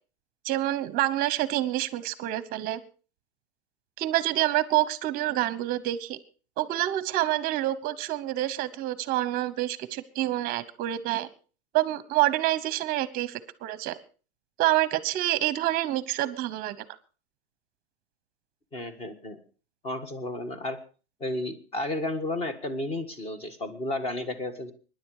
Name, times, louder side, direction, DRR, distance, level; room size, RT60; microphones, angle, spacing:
voice 1, 0.4-2.8 4.0-6.2 6.6-11.3 11.7-14.0 14.6-16.9, right 15 dB, 30° right, 17 dB, 1.0 m, -27 dB
voice 2, 18.7-19.4 19.8-20.8 21.2-24.7, left 1 dB, 20° left, 11 dB, 1.7 m, -32 dB
23.0 x 10.5 x 4.9 m, 0.39 s
supercardioid pair, 160°, 31 cm